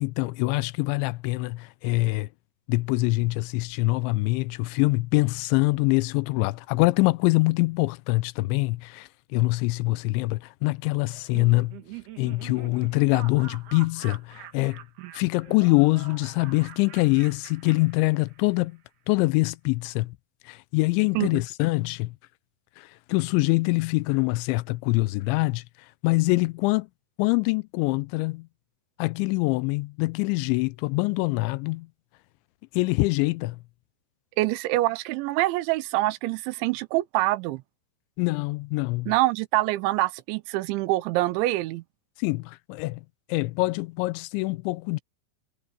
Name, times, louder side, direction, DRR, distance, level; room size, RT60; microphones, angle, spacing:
voice 1, 0.0-2.3 2.7-11.8 12.2-14.8 15.1-18.8 19.1-20.2 20.5-22.2 22.8-25.6 26.0-26.9 27.2-28.5 29.0-31.9 32.7-33.6 38.2-39.1 42.2-43.0 43.3-45.0, left 23 dB, 85° left, 2.9 m, -24 dB
Laughter, 11.1-18.6, right 11 dB, 65° right, 3.8 m, -45 dB
voice 2, 34.4-37.6 39.1-41.8, right 18 dB, 85° right, 3.2 m, -25 dB
omnidirectional pair, 5.3 m